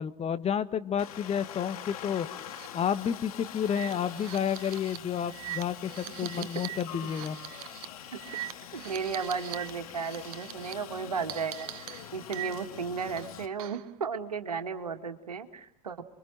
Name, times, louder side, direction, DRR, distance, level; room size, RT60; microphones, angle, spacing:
voice 1, 0.0-2.3 2.7-7.4, left 8 dB, 35° left, 13 dB, 1.5 m, -30 dB
Aircraft, 1.0-13.5, left 10 dB, 75° left, 2.0 m, -44 dB
sound 1, 2.4-2.7 3.0-3.1 3.6-9.7 10.0-10.7 11.3-12.8 13.2-13.9, right 16 dB, 65° right, 1.2 m, -42 dB
voice 2, 8.7-16.0, right 5 dB, 90° right, 8 dB, 2.0 m, -35 dB
28.5 x 23.5 x 7.6 m, 0.70 s
hypercardioid pair, 80°, 19 cm